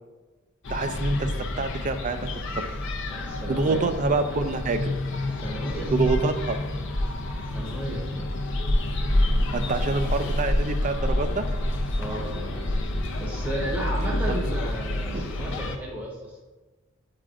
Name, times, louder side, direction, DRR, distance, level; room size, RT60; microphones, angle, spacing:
sound 1, 0.6-15.8, left 1 dB, 65° left, 0.6 m, -28 dB
voice 1, 0.7-2.4 3.5-4.9 5.9-6.6 9.5-11.5 14.3-14.4 15.1-15.2, right 3 dB, 40° right, 7 dB, 0.4 m, -26 dB
sound 2, 3.1-11.4, left 3 dB, 45° left, 1.5 m, -49 dB
voice 2, 3.1-3.9 4.2-4.4 5.3-5.9 7.5-8.3 12.0-12.7 13.2-16.4, equal, 5° right, -5 dB, 0.8 m, -34 dB
8.5 x 4.9 x 2.5 m, 1.2 s
head